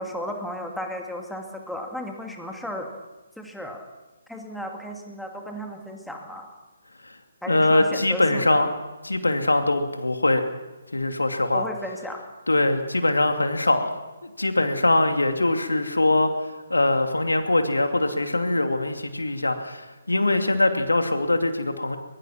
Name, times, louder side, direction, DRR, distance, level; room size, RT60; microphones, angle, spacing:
voice 1, 0.0-2.9 3.4-3.8 4.3-6.5 7.4-8.7 11.5-12.2, equal, ahead, 2 dB, 2.4 m, -34 dB
voice 2, 7.5-8.7 9.0-10.5 10.9-11.7 12.5-22.0, left 2 dB, 75° left, 6 dB, 2.6 m, -22 dB
23.0 x 22.5 x 6.0 m, 1.2 s
figure-of-eight pair, 140°, 0 cm